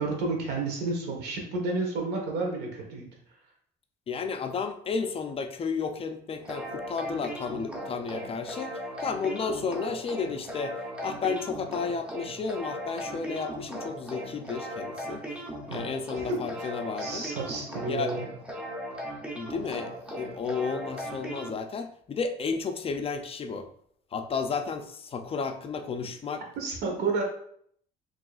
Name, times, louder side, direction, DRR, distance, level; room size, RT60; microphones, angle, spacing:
voice 1, 0.0-3.1 15.7-15.9 16.1-16.7 17.0-18.3 26.5-27.2, right 3 dB, 80° right, 1 dB, 1.3 m, -31 dB
voice 2, 4.1-8.7 9.0-10.7 11.0-15.2 15.7-17.3 17.9-18.1 19.4-19.9 20.2-23.7 24.1-26.4, left 5 dB, 35° left, 7 dB, 0.4 m, -32 dB
sound 1, 6.4-21.5, equal, 5° right, 0.8 m, -38 dB
4.9 x 3.0 x 2.4 m, 0.65 s
cardioid pair, 110°, 17 cm